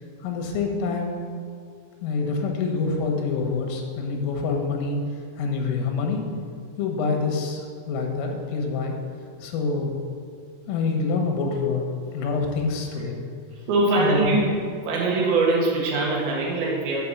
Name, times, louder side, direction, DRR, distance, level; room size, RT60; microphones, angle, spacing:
voice 1, 0.2-1.2 2.0-5.0 5.4-6.2 6.8-9.0 9.4-9.9 10.7-13.2 14.0-14.4, left 4 dB, 85° left, 2 dB, 3.8 m, -26 dB
voice 2, 13.7-14.5 14.9-17.0, right 3 dB, 60° right, -3 dB, 3.1 m, -22 dB
9.4 x 5.3 x 7.1 m, 2.3 s
omnidirectional pair, 5.7 m